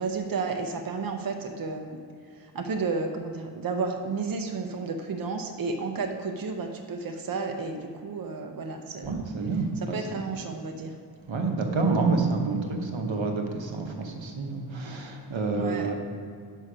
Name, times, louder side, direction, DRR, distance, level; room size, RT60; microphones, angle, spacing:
voice 1, 0.0-2.0 2.5-9.1 9.8-10.9 15.5-15.9, right 4 dB, 50° right, 5 dB, 0.6 m, -32 dB
voice 2, 9.0-10.3 11.3-15.9, right 3 dB, 85° right, 3 dB, 0.9 m, -28 dB
6.4 x 5.5 x 5.0 m, 2.3 s
wide cardioid pair, 75°, 44 cm